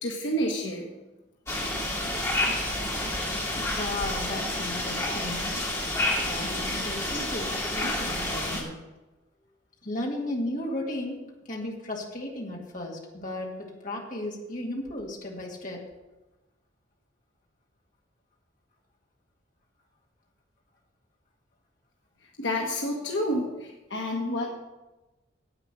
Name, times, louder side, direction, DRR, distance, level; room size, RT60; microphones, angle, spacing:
voice 1, 0.0-0.9 22.4-24.5, equal, 65° left, 0 dB, 1.3 m, -29 dB
sound 1, 1.5-8.6, left 1 dB, 15° left, 2.3 m, -29 dB
voice 2, 3.5-5.6 6.3-8.8 9.8-11.2 11.5-15.8, left 1 dB, 40° left, -1 dB, 2.1 m, -35 dB
10.0 x 8.4 x 6.1 m, 1.1 s
head